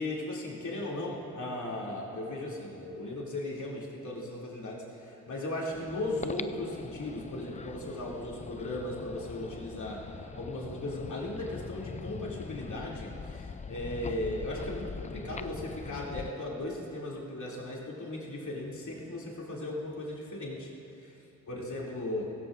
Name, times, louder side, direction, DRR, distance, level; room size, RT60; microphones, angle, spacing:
voice 1, 0.0-20.7 21.0-21.1 21.5-22.3, left 1 dB, 65° left, -4 dB, 3.0 m, -37 dB
sound 1, 5.7-16.3, left 5 dB, 25° left, 0.4 m, -42 dB
16.5 x 16.0 x 2.6 m, 2.9 s
cardioid pair, 55°, 32 cm